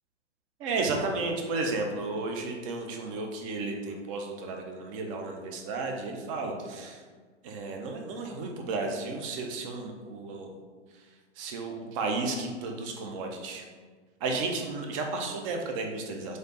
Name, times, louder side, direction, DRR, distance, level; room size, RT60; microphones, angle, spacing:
voice 1, 0.6-7.0 7.4-10.6 10.9-11.0 11.4-13.7 14.2-16.4, right 3 dB, 30° right, 2 dB, 0.5 m, -33 dB
3.3 x 2.6 x 4.0 m, 1.5 s
hypercardioid pair, 115°, 36 cm